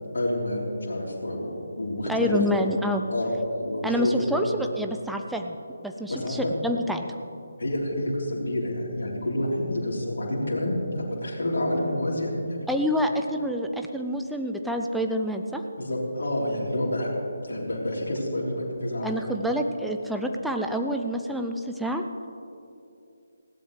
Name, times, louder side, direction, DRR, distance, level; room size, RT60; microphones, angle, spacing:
voice 1, 0.1-2.4 3.1-4.4 6.1-6.5 7.6-12.7 15.8-17.1 17.4-19.2, left 1 dB, 50° left, -4 dB, 3.8 m, -28 dB
voice 2, 2.1-3.0 3.8-5.6 5.8-7.0 12.7-15.6 19.0-22.0, equal, ahead, 3 dB, 0.5 m, -27 dB
19.5 x 16.5 x 3.3 m, 2.6 s
figure-of-eight pair, 150°, 0 cm